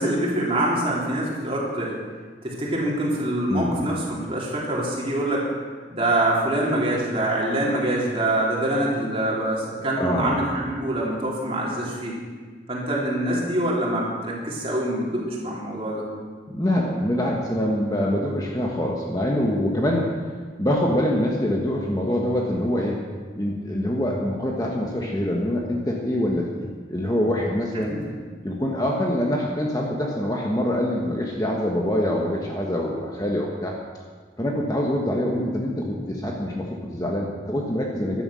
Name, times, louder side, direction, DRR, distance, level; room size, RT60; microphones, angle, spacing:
voice 1, 0.0-2.0 2.4-5.5 5.9-12.2 12.7-16.0 27.7-28.0, right 1 dB, 30° right, -4 dB, 3.4 m, -25 dB
voice 2, 3.5-3.9 10.0-10.5 16.5-20.1 20.6-23.0 23.3-27.9 28.4-33.8 34.4-38.2, left 1 dB, 20° left, -2 dB, 1.4 m, -25 dB
14.0 x 12.0 x 6.4 m, 1.5 s
head